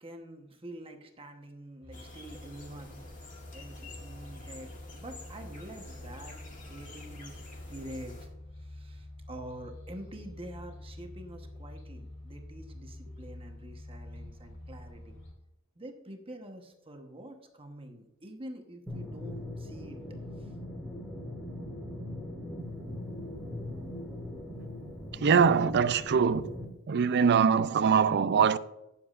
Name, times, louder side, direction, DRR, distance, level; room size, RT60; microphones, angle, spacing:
voice 1, 0.0-3.0 3.5-6.4 6.7-7.4 7.7-8.3 8.6-15.2 15.8-20.0 20.3-20.6, right 1 dB, 25° right, 1.1 m, -46 dB
sound 1, 1.8-15.3, left 1 dB, 65° left, 3.5 m, -47 dB
sound 2, 1.9-8.3, left 2 dB, 35° left, 2.0 m, -50 dB
sound 3, 18.9-26.6, left 1 dB, 5° left, 1.8 m, -40 dB
voice 2, 25.1-26.5 26.9-28.6, right 6 dB, 50° right, 0.4 m, -23 dB
18.0 x 7.2 x 2.5 m
head